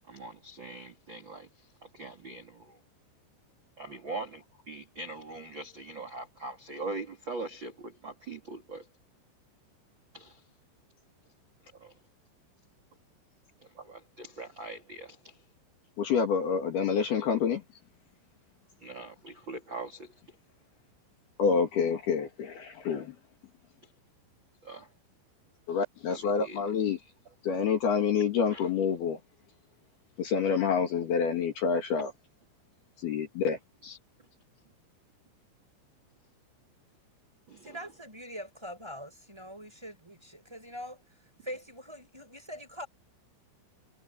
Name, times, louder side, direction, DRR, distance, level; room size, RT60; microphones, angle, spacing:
voice 1, 0.1-1.5 1.9-2.8 3.8-8.8 10.1-10.4 11.8-11.9 13.8-15.2 18.8-20.1 24.6-24.9 26.1-26.6 28.5-28.6 33.8-34.0 37.5-37.8, right 2 dB, 30° right, 2.5 m, -41 dB
voice 2, 16.0-17.6 21.4-23.2 25.7-27.0 27.4-29.2 30.2-32.1 33.0-33.6, left 6 dB, 55° left, 3.9 m, -27 dB
voice 3, 37.6-42.9, equal, 5° right, 5.3 m, -43 dB
omnidirectional pair, 5.7 m